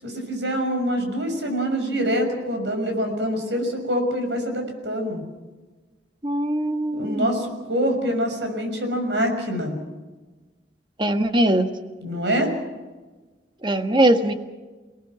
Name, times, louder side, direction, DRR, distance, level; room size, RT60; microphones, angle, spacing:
voice 1, 0.0-5.2 6.9-9.8 12.0-12.5, equal, 85° right, 5 dB, 6.1 m, -25 dB
voice 2, 6.2-7.3 11.0-11.7 13.6-14.3, right 1 dB, 25° right, 7 dB, 1.5 m, -21 dB
28.5 x 18.5 x 6.2 m, 1.3 s
head